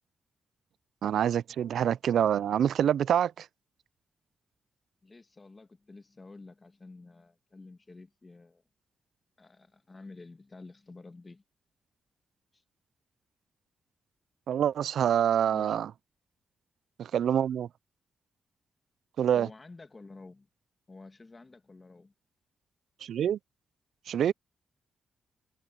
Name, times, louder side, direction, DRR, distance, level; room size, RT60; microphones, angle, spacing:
voice 1, 1.0-3.5 14.5-15.9 17.0-17.7 19.2-19.5 23.0-23.4 24.1-24.3, right 9 dB, 80° right, 0.3 m, -26 dB
voice 2, 5.0-8.6 9.4-11.4 12.5-12.6 15.5-15.8 19.3-20.5 20.9-22.1, left 3 dB, 35° left, 1.9 m, -50 dB
supercardioid pair, 55°, 0 cm